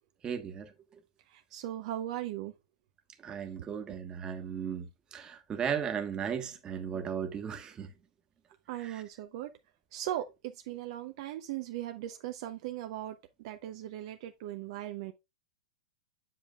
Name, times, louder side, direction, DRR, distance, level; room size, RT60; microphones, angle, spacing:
voice 1, 0.2-0.7 3.2-7.9 8.8-9.0, right 7 dB, 25° right, 1.4 m, -36 dB
voice 2, 1.3-2.5 3.9-4.0 8.7-9.5 9.9-15.1, right 13 dB, 50° right, 0.7 m, -38 dB
7.7 x 7.2 x 2.4 m
figure-of-eight pair, 100°, 3 cm